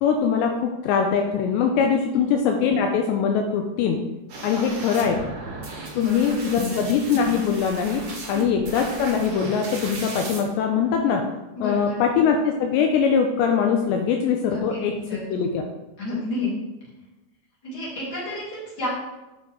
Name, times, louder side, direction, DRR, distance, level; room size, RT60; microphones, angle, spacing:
voice 1, 0.0-4.0 4.4-5.2 6.0-11.2 11.6-14.9 15.3-15.6, left 6 dB, 85° left, 3 dB, 2.7 m, -22 dB
sound 1, 4.3-10.4, right 3 dB, 60° right, 1.4 m, -36 dB
voice 2, 5.9-6.8 11.5-12.0 14.4-14.8 15.1-15.5 16.0-16.5 17.6-18.9, left 2 dB, 25° left, -7 dB, 2.9 m, -31 dB
8.8 x 7.2 x 3.8 m, 1.0 s
omnidirectional pair, 5.4 m